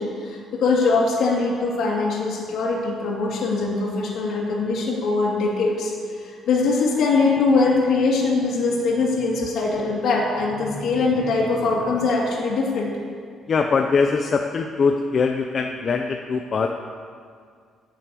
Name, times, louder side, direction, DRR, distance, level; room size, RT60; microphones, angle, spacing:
voice 1, 0.0-5.9 6.2-12.9, left 3 dB, 65° left, -4 dB, 2.7 m, -22 dB
voice 2, 13.5-16.7, left 5 dB, 35° left, 4 dB, 0.6 m, -22 dB
11.5 x 7.8 x 8.5 m, 2.1 s
cardioid pair, 155°, 0 cm